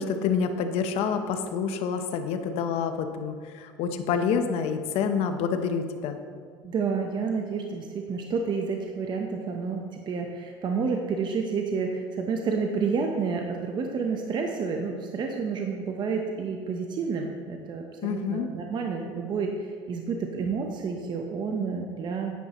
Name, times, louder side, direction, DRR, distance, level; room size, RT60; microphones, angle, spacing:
voice 1, 0.0-6.2 18.0-18.5, left 6 dB, 65° left, 7 dB, 0.9 m, -28 dB
voice 2, 6.6-22.3, right 5 dB, 40° right, 2 dB, 0.9 m, -30 dB
9.8 x 9.5 x 3.0 m, 2.1 s
supercardioid pair, 95°, 11 cm